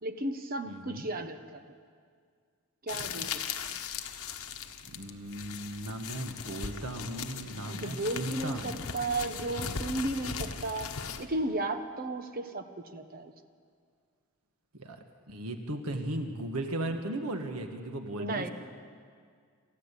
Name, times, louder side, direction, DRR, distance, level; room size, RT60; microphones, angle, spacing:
voice 1, 0.0-1.4 2.9-3.4 7.5-8.6 8.9-10.9 11.2-12.6 12.9-13.3 18.2-18.5, right 2 dB, 40° right, 7 dB, 1.3 m, -34 dB
voice 2, 0.6-1.0 4.9-8.9 14.8-18.5, right 1 dB, 80° right, 5 dB, 1.6 m, -37 dB
sound 1, 2.9-11.2, left 6 dB, 80° left, 1.4 m, -39 dB
27.5 x 14.5 x 8.4 m, 2.1 s
head